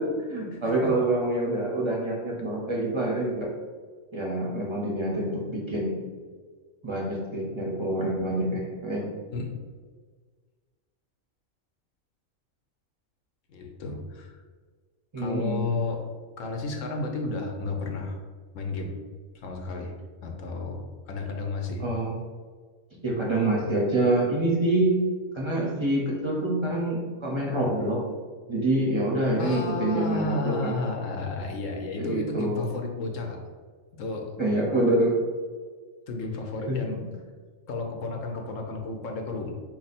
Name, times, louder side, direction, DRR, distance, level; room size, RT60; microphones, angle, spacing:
voice 1, 0.0-3.5 4.1-6.0 6.8-9.1 15.1-15.7 21.8-22.2 23.0-25.0 25.3-28.0 28.5-30.8 32.0-32.6 34.4-35.1 36.7-37.0, right 1 dB, 30° right, -2 dB, 0.5 m, -26 dB
voice 2, 0.5-0.9 9.3-9.5 13.5-14.4 15.2-16.0 16.4-18.2 18.5-19.0 19.3-19.9 20.2-21.8 23.6-23.7 29.4-33.4 34.0-34.3 36.1-37.0 37.7-39.5, left 3 dB, 75° left, 2 dB, 1.0 m, -32 dB
4.2 x 2.7 x 4.1 m, 1.5 s
omnidirectional pair, 1.4 m